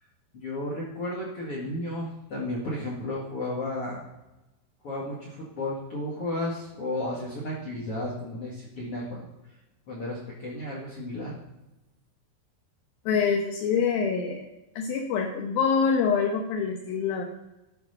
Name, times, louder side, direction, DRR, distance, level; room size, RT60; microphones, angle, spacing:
voice 1, 0.3-4.0 4.8-9.3 9.9-11.4, left 1 dB, 45° left, -4 dB, 2.4 m, -33 dB
voice 2, 13.1-14.5 14.8-17.2, left 6 dB, 70° left, 2 dB, 2.7 m, -25 dB
13.5 x 7.3 x 5.6 m, 0.97 s
omnidirectional pair, 4.7 m